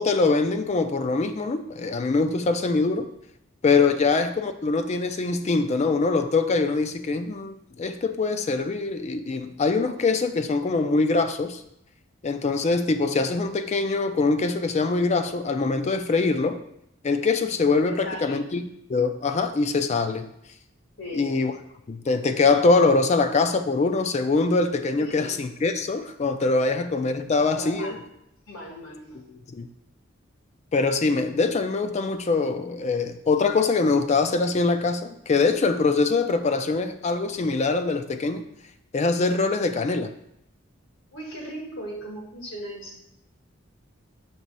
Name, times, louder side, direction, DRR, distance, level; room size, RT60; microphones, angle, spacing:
voice 1, 0.0-3.1 3.6-11.6 12.2-16.6 17.0-18.6 18.9-20.3 21.1-21.5 21.9-28.0 29.1-29.7 30.7-38.4 38.9-40.1, left 3 dB, 35° left, 9 dB, 0.4 m, -23 dB
voice 2, 17.8-18.4 21.0-21.4 25.0-25.3 27.6-28.0 28.5-29.2 41.1-43.0, equal, 80° left, -1 dB, 1.8 m, -37 dB
6.1 x 3.1 x 5.4 m, 0.78 s
head